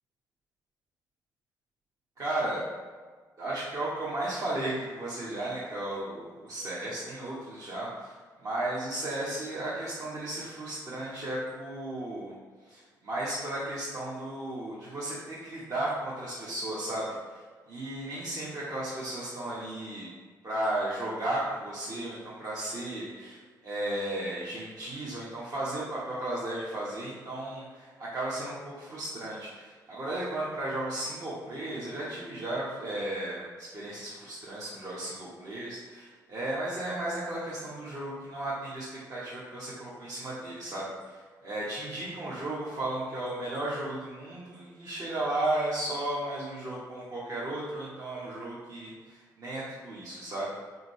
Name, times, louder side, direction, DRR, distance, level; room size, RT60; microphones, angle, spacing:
voice 1, 2.2-2.6 3.4-8.2 8.4-12.3 12.6-20.1 20.4-23.4 23.6-50.5, right 1 dB, 40° right, -8 dB, 1.0 m, -34 dB
4.5 x 3.9 x 3.0 m, 1.5 s
figure-of-eight pair, 45°, 10 cm